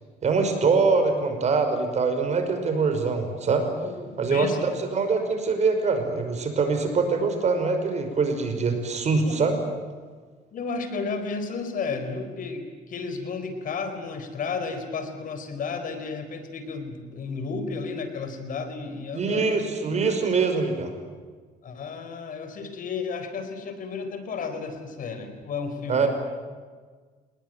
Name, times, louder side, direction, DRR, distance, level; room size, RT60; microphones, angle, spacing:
voice 1, 0.2-3.7 4.2-9.6 19.1-20.9 25.9-26.1, right 4 dB, 40° right, 7 dB, 5.6 m, -24 dB
voice 2, 3.8-4.6 9.2-9.5 10.5-19.6 21.6-26.1, left 4 dB, 55° left, 8 dB, 4.5 m, -33 dB
28.0 x 20.0 x 9.2 m, 1.5 s
cardioid pair, 110°, 17 cm